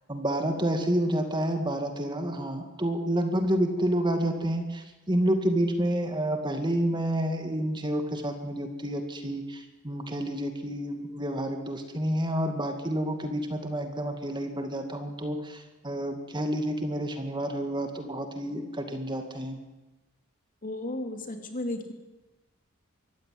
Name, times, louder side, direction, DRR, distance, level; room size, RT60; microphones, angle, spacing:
voice 1, 0.1-19.6, right 1 dB, 20° right, 6 dB, 2.2 m, -29 dB
voice 2, 20.6-21.9, left 1 dB, 40° left, 5 dB, 3.0 m, -34 dB
25.0 x 15.0 x 9.7 m, 1.1 s
head